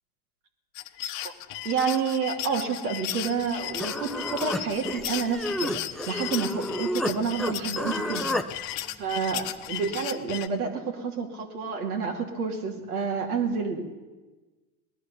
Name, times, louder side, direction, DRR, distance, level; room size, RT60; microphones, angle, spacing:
sound 1, 0.7-10.5, left 13 dB, 50° left, 0.9 m, -35 dB
voice 1, 1.6-8.3 9.0-14.0, right 5 dB, 80° right, 2 dB, 2.5 m, -29 dB
Human voice, 3.4-3.5 3.8-7.1 7.4-8.5, left 1 dB, ahead, 0.4 m, -31 dB
18.0 x 11.5 x 6.8 m, 1.3 s
hypercardioid pair, 95°, 44 cm